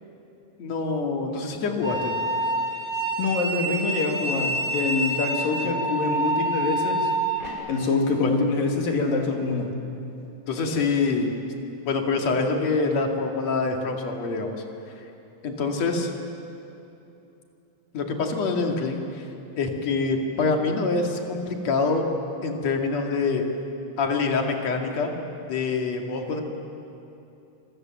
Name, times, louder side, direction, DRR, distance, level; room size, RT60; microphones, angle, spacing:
voice 1, 0.6-2.1 8.2-8.4 10.5-11.3 11.9-14.6 15.4-16.1 17.9-19.2 19.6-22.1 22.4-23.4 24.0-25.1 25.5-26.4, left 4 dB, 50° left, 2 dB, 3.3 m, -25 dB
sound 1, 1.8-7.5, right 1 dB, 10° left, 6.0 m, -27 dB
voice 2, 3.2-7.1 7.7-9.8, left 3 dB, 80° left, 1 dB, 4.3 m, -25 dB
27.5 x 25.5 x 7.7 m, 2.8 s
omnidirectional pair, 4.0 m